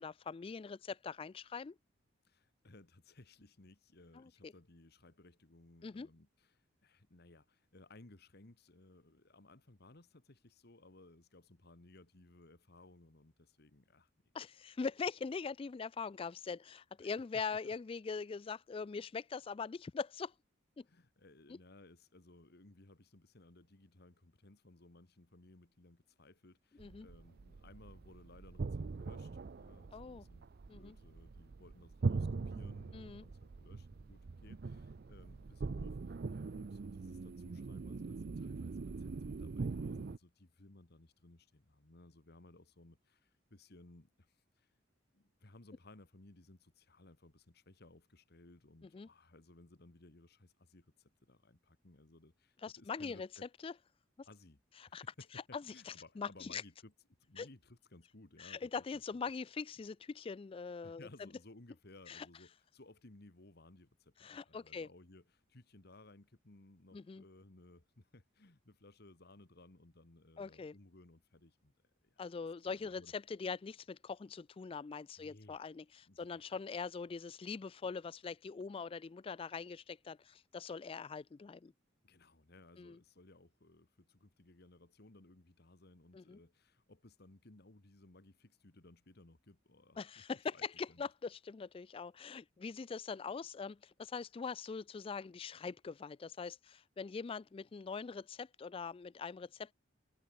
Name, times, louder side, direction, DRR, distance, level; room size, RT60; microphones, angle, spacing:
voice 1, 0.0-1.8 4.2-4.5 5.8-6.1 14.3-20.3 20.8-20.9 26.8-27.1 29.9-30.2 30.7-31.0 32.9-33.2 48.9-49.1 52.6-53.3 53.6-53.7 54.9-55.0 55.5-56.6 57.4-57.5 58.4-61.1 62.1-62.3 64.2-64.9 66.9-67.2 70.4-70.7 72.2-81.7 82.8-83.0 86.1-86.4 90.0-99.7, left 5 dB, 30° left, 0.3 m, -42 dB
voice 2, 2.2-14.1 17.0-17.2 17.5-17.7 20.9-44.7 45.1-53.5 54.3-54.6 54.9-56.9 57.2-59.0 60.8-71.7 72.0-72.2 72.8-73.1 75.2-75.6 76.1-76.4 82.0-91.1, left 2 dB, 55° left, 1.6 m, -60 dB
sound 1, 26.8-40.2, right 4 dB, 50° right, 0.5 m, -42 dB
head